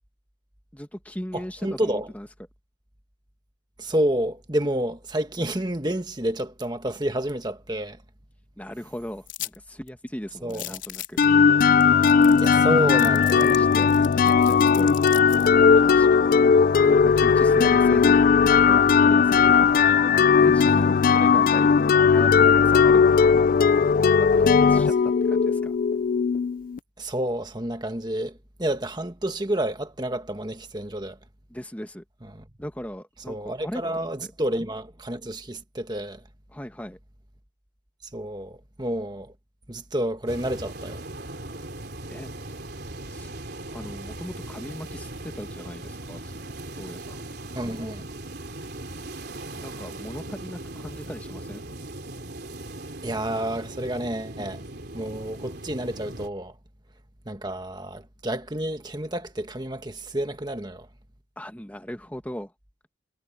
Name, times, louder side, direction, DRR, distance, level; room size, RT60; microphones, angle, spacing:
voice 1, 0.7-2.3 8.6-11.2 12.3-15.0 15.4-19.5 20.3-23.3 24.2-25.7 31.5-32.0 32.6-34.3 36.5-37.0 42.1-42.3 43.1-43.3 43.7-46.4 46.7-47.2 49.5-51.6 61.4-62.5, equal, 10° left, 1.5 m, -38 dB
voice 2, 1.3-2.1 3.8-8.0 10.4-10.8 12.4-13.6 20.6-20.9 27.0-31.2 32.3-32.4 33.3-36.2 38.1-39.3 39.7-41.0 47.5-48.1 53.0-54.6 54.9-56.6 57.2-60.9, right 1 dB, 20° right, 1.6 m, -29 dB
sound 1, 9.3-9.6 9.9-10.0 10.5-11.2 11.8-11.9 12.1-12.6 13.0-15.5, left 14 dB, 75° left, 2.9 m, -37 dB
sound 2, 11.2-26.8, left 6 dB, 45° left, 0.3 m, -18 dB
sound 3, 40.3-56.3, right 2 dB, 55° right, 3.8 m, -39 dB
head